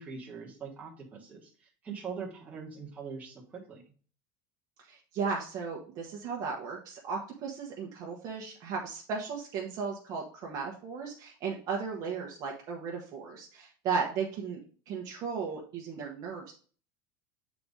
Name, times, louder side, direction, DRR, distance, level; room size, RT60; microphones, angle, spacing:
voice 1, 0.0-3.8, right 5 dB, 15° right, -3 dB, 1.3 m, -42 dB
voice 2, 4.9-14.6 14.9-16.5, right 5 dB, 35° right, -1 dB, 1.0 m, -35 dB
7.6 x 4.1 x 3.6 m, 0.41 s
cardioid pair, 175°, 11 cm